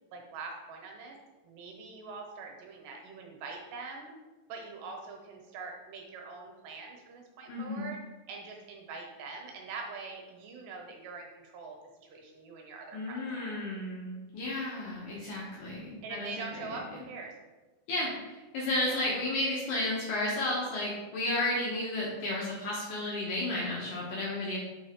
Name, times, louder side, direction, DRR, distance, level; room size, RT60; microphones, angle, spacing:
voice 1, 0.1-1.2 1.4-4.1 4.5-8.0 8.3-13.6 16.0-17.3 18.8-19.1, right 4 dB, 75° right, 1 dB, 3.0 m, -43 dB
voice 2, 7.5-7.9 12.9-16.8 17.9-24.6, left 1 dB, 85° left, -5 dB, 1.7 m, -33 dB
8.9 x 3.8 x 3.6 m, 1.2 s
omnidirectional pair, 5.2 m